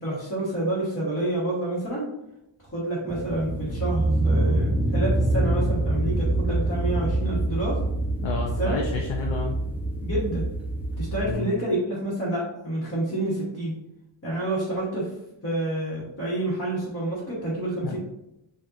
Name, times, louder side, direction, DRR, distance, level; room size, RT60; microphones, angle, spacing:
voice 1, 0.0-2.1 2.6-7.8 8.6-8.8 10.0-10.4 11.0-13.7 14.2-15.1 15.4-18.0, right 1 dB, 30° left, -10 dB, 1.4 m, -28 dB
sound 1, 3.1-11.3, right 1 dB, 5° right, 0.3 m, -25 dB
voice 2, 8.2-9.6 11.2-11.5 17.8-18.0, left 4 dB, 70° left, 1 dB, 0.7 m, -30 dB
7.3 x 2.6 x 2.6 m, 0.86 s
wide cardioid pair, 180°, 48 cm